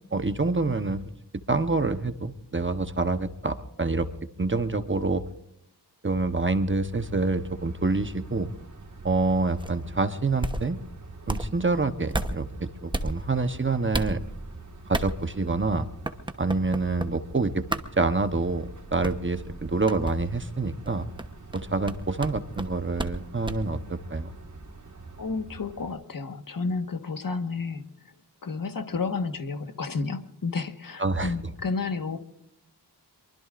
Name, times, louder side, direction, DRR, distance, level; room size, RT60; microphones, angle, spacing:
voice 1, 0.1-1.0 1.5-4.1 4.4-5.2 6.0-8.5 9.0-10.8 11.3-14.2 14.9-15.9 16.4-17.6 18.0-21.1 21.5-24.3 31.0-31.3, right 3 dB, 30° right, 9 dB, 1.0 m, -27 dB
sound 1, 6.9-26.0, right 3 dB, 45° right, 1.9 m, -45 dB
sound 2, 9.6-9.8 10.3-10.7 11.3-11.5 12.1-12.4 12.9-13.1 13.9-14.1 14.9-15.1 16.0-17.1 17.7-17.8 19.0-19.3 19.9-20.2 20.8-23.2 23.4-23.6, right 1 dB, 10° right, 1.0 m, -30 dB
voice 2, 25.2-28.1 28.4-32.2, left 4 dB, 55° left, 7 dB, 1.5 m, -31 dB
24.0 x 23.5 x 2.6 m, 0.76 s
wide cardioid pair, 120°, 41 cm